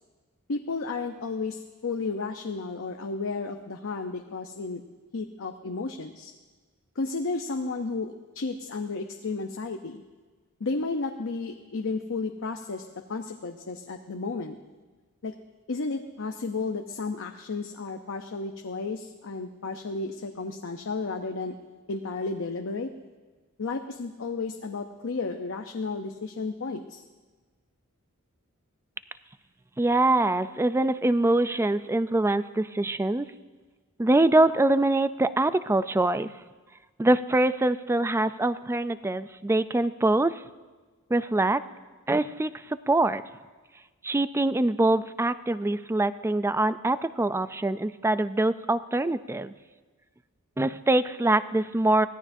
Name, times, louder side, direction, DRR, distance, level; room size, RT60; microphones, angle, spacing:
voice 1, 0.5-4.8 5.1-6.3 7.0-10.0 10.6-14.6 15.2-15.3 15.7-21.5 21.9-22.9 23.6-27.0, left 3 dB, 65° left, 5 dB, 0.7 m, -33 dB
voice 2, 29.8-33.3 34.0-36.3 37.0-40.4 41.1-41.6 42.1-43.2 44.0-49.5 50.6-52.1, right 2 dB, 10° right, 13 dB, 0.4 m, -24 dB
24.0 x 16.5 x 2.7 m, 1.3 s
head